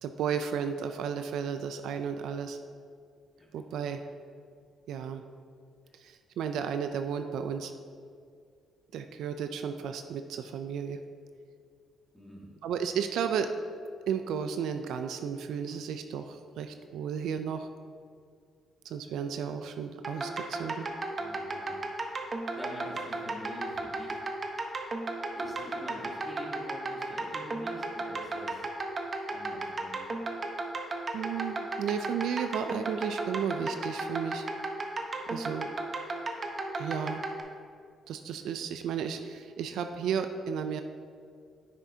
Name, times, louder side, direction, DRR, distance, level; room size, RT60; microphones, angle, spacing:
voice 1, 0.0-2.6 3.5-4.0 4.9-5.2 5.9-7.7 8.9-11.0 12.6-13.5 14.1-17.7 18.8-20.9 31.1-34.4 35.3-35.7 36.8-37.3 38.1-40.8, right 7 dB, 80° right, 8 dB, 0.4 m, -33 dB
voice 2, 12.1-12.5 21.2-21.8 22.5-24.2 25.3-28.7 29.3-30.0, equal, 5° right, -3 dB, 1.8 m, -45 dB
sound 1, 20.0-37.4, right 2 dB, 40° right, 0.8 m, -34 dB
9.9 x 6.0 x 2.7 m, 2.2 s
cardioid pair, 90°, 0 cm